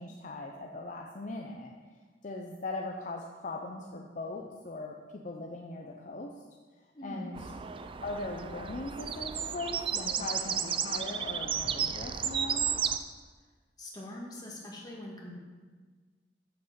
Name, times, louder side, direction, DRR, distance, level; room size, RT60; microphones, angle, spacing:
voice 1, 0.0-1.8 2.2-6.4 7.0-7.4 8.0-12.8, left 2 dB, 45° left, 0 dB, 0.6 m, -40 dB
voice 2, 6.9-7.4 13.8-15.3, left 1 dB, 20° left, -3 dB, 1.8 m, -42 dB
sound 1, 7.3-13.0, right 7 dB, 30° right, 0.4 m, -33 dB
8.0 x 6.7 x 5.1 m, 1.4 s
head